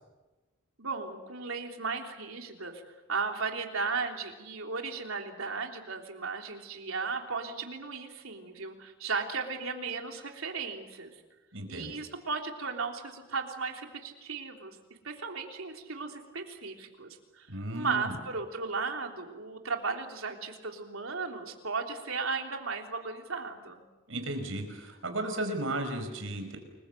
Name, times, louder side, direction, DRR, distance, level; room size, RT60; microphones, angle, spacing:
voice 1, 0.8-2.8 3.1-11.1 11.7-14.8 15.0-17.5 17.7-23.8, right 4 dB, 90° right, 3 dB, 3.4 m, -35 dB
voice 2, 11.5-11.9 17.5-18.2 24.1-26.6, right 1 dB, 75° right, 6 dB, 5.4 m, -35 dB
29.5 x 21.5 x 7.8 m, 1.2 s
head